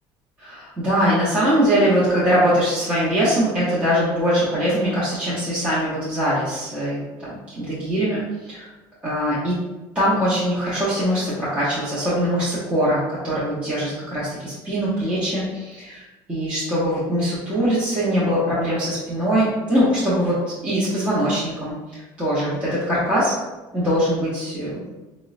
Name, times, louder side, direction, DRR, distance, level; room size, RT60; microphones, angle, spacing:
voice 1, 0.4-7.3 7.6-8.7 9.0-9.6 9.9-20.4 20.6-23.3 23.7-24.8, equal, 15° right, -10 dB, 0.7 m, -22 dB
5.0 x 2.0 x 2.4 m, 1.1 s
cardioid pair, 170°, 9 cm